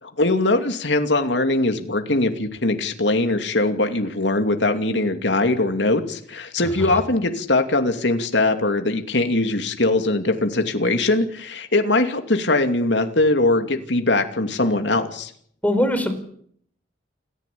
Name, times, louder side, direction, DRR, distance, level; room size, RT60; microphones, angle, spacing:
voice 1, 0.0-15.3, left 2 dB, 75° left, 6 dB, 2.7 m, -21 dB
voice 2, 6.6-7.0 15.6-16.1, left 1 dB, 10° left, 8 dB, 4.6 m, -22 dB
28.5 x 15.5 x 8.6 m, 0.64 s
head